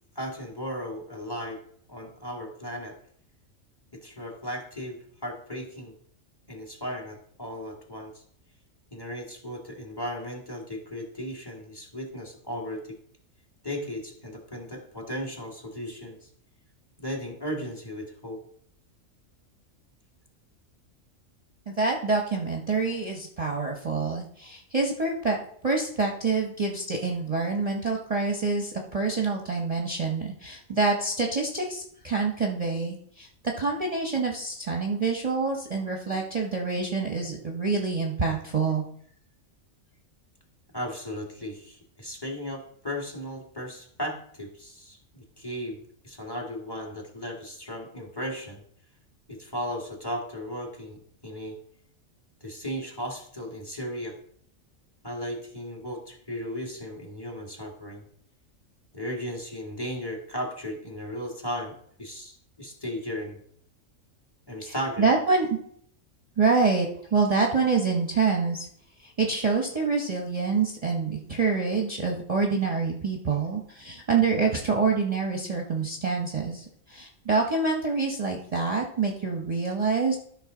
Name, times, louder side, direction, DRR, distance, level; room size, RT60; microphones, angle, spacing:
voice 1, 0.2-1.6 1.9-2.9 3.9-5.9 6.5-8.2 8.9-13.0 13.6-16.3 17.0-18.4 40.7-48.6 49.3-51.6 52.4-54.2 55.0-58.0 58.9-61.7 62.0-63.4 64.5-65.1, equal, 20° left, 0 dB, 1.7 m, -36 dB
voice 2, 21.7-25.4 25.6-33.3 33.6-38.8 64.7-65.6 66.4-68.7 69.0-80.2, right 4 dB, 30° right, 0 dB, 1.0 m, -26 dB
13.0 x 5.5 x 3.8 m, 0.63 s
omnidirectional pair, 1.3 m